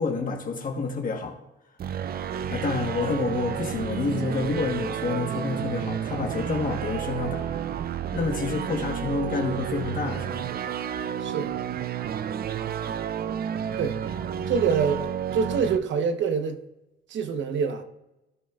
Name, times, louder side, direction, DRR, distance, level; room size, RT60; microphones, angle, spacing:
voice 1, 0.0-1.4 2.5-7.5 8.1-10.4, left 4 dB, 45° left, 1.3 m, -28 dB
sound 1, 1.8-15.8, right 9 dB, 50° right, 0.5 m, -31 dB
voice 2, 11.2-11.5 12.8-13.1 13.8-14.0 14.5-15.1 15.3-16.6 17.1-17.8, right 6 dB, 70° right, 1.1 m, -26 dB
16.5 x 6.2 x 2.4 m
cardioid pair, 90°, 20 cm